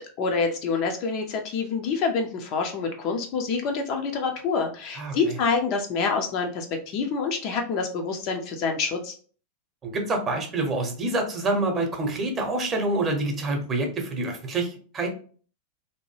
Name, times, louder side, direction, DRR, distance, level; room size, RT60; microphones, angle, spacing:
voice 1, 0.2-9.1, left 5 dB, 40° left, 3 dB, 0.5 m, -27 dB
voice 2, 9.8-15.1, right 2 dB, 25° right, 3 dB, 0.8 m, -27 dB
2.7 x 2.2 x 3.2 m, 0.42 s
figure-of-eight pair, 90°, 0 cm